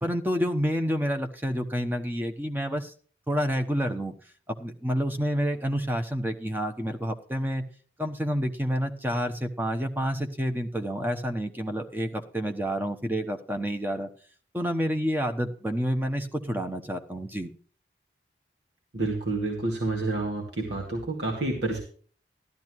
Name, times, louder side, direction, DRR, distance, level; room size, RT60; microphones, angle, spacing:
voice 1, 0.0-2.9 3.3-4.1 4.5-7.6 8.0-14.1 14.5-17.5, equal, 10° right, 5 dB, 1.0 m, -29 dB
voice 2, 18.9-21.8, right 2 dB, 75° right, 0 dB, 2.3 m, -29 dB
13.0 x 12.0 x 3.1 m, 0.43 s
head